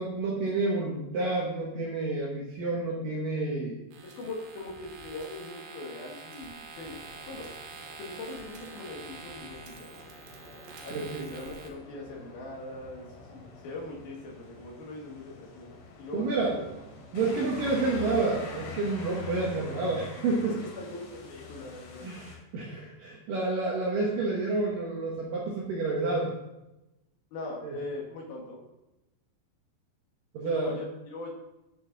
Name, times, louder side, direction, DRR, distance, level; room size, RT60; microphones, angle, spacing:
voice 1, 0.0-3.8 10.9-11.3 16.1-16.6 17.1-20.6 22.0-26.3 27.6-27.8 30.3-30.7, right 3 dB, 65° right, -3 dB, 2.3 m, -29 dB
sound 1, 3.9-11.7, right 4 dB, 85° right, 3.8 m, -46 dB
voice 2, 4.0-7.0 7.3-7.5 8.0-9.9 10.8-16.6 20.4-22.1 27.3-28.6 30.4-31.3, left 2 dB, 65° left, -2 dB, 3.0 m, -41 dB
sound 2, 6.8-22.4, left 3 dB, 85° left, 4.5 m, -46 dB
10.5 x 7.0 x 3.9 m, 0.97 s
omnidirectional pair, 5.3 m